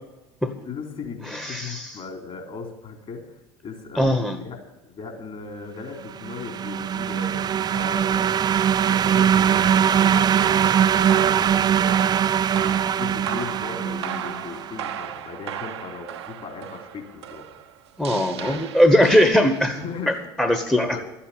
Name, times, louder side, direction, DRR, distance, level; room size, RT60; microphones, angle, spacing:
voice 1, 0.4-4.6 4.8-8.3 8.9-12.0 12.6-17.5 18.0-18.6 19.7-20.3 20.8-21.0, left 5 dB, 45° left, 4 dB, 3.6 m, -37 dB
voice 2, 1.3-2.0 3.9-4.3 18.0-19.8 20.1-21.0, equal, 5° left, 7 dB, 1.2 m, -20 dB
sound 1, 6.1-14.7, right 8 dB, 30° right, 0.4 m, -21 dB
sound 2, 9.7-19.9, right 10 dB, 80° right, 1.0 m, -36 dB
13.0 x 8.6 x 8.8 m, 1.0 s
hypercardioid pair, 70°, 14 cm